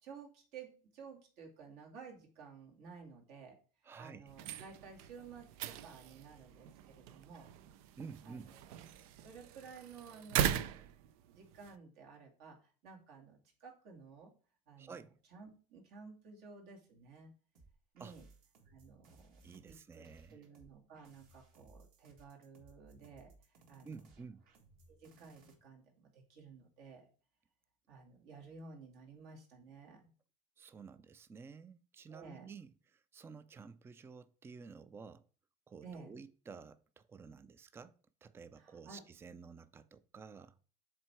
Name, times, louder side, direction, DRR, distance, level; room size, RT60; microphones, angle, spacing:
voice 1, 0.0-7.5 8.2-8.8 9.2-14.3 14.7-14.9 15.3-17.3 17.9-18.3 18.7-20.1 20.3-24.0 24.9-27.1 27.9-30.1 32.1-32.5 35.8-36.1 38.6-39.0, right 5 dB, 70° right, 2.2 m, -54 dB
voice 2, 3.8-4.2 8.0-8.5 14.8-15.2 18.0-18.1 19.4-20.4 23.8-24.4 30.6-35.2 35.7-40.6, right 5 dB, 15° right, 0.3 m, -52 dB
sound 1, 4.3-11.8, right 10 dB, 90° right, 0.5 m, -40 dB
sound 2, 17.5-25.5, right 2 dB, 55° right, 1.7 m, -63 dB
7.5 x 3.5 x 4.4 m
supercardioid pair, 130°, 18 cm